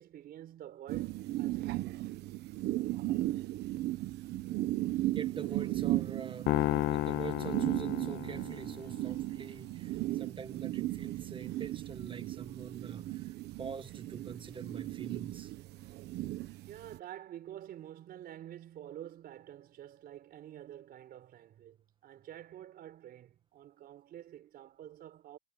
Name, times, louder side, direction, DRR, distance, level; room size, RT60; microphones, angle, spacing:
voice 1, 0.0-2.0 16.7-21.8 22.0-25.4, right 12 dB, 65° right, 4.4 m, -48 dB
sound 1, 0.9-17.0, right 16 dB, 80° right, 1.3 m, -36 dB
voice 2, 5.1-6.6 6.9-15.5, right 6 dB, 30° right, 1.8 m, -45 dB
sound 2, 6.5-8.8, left 16 dB, 80° left, 1.1 m, -32 dB
cardioid pair, 110°, 17 cm